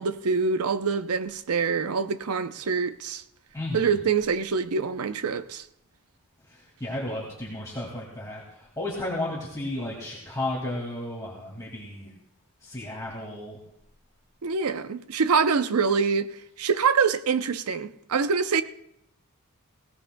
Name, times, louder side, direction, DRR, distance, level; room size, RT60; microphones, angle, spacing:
voice 1, 0.0-3.2 3.7-5.6 14.4-16.3 16.6-18.6, right 5 dB, 85° right, 0.6 m, -25 dB
voice 2, 3.5-4.0 6.4-12.1 12.6-13.6, left 1 dB, 15° left, 2.1 m, -33 dB
21.0 x 17.0 x 2.2 m
head